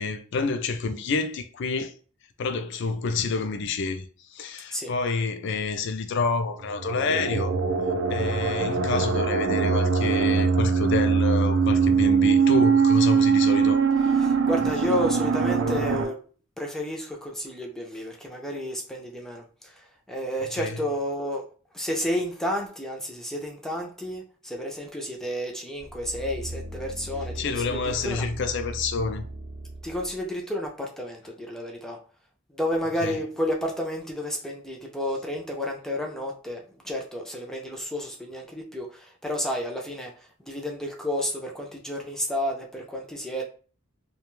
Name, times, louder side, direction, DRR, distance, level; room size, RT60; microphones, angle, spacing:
voice 1, 0.0-1.9 2.4-4.1 4.3-7.5 8.1-13.8 20.6-20.8 27.4-29.3 33.0-33.2, left 4 dB, 60° left, 0.4 m, -28 dB
sound 1, 6.7-16.1, right 5 dB, 85° right, 0.4 m, -22 dB
voice 2, 14.2-16.2 16.6-21.4 21.7-28.2 29.8-32.0 32.5-43.4, equal, 5° left, 0.4 m, -31 dB
sound 2, 25.8-30.2 30.7-30.8, right 1 dB, 45° right, 0.7 m, -38 dB
2.4 x 2.2 x 3.0 m
head